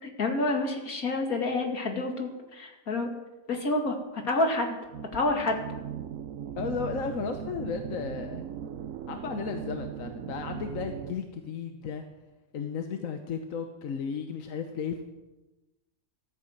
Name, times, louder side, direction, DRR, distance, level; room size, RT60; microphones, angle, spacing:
voice 1, 0.0-3.1 3.5-4.8 5.1-5.6, left 2 dB, 85° left, 3 dB, 2.5 m, -28 dB
sound 1, 4.9-11.1, right 9 dB, 70° right, 1.1 m, -38 dB
voice 2, 6.6-8.4 9.1-12.0 12.5-15.0, left 6 dB, 70° left, 6 dB, 1.4 m, -34 dB
13.5 x 9.9 x 7.8 m, 1.1 s
omnidirectional pair, 1.5 m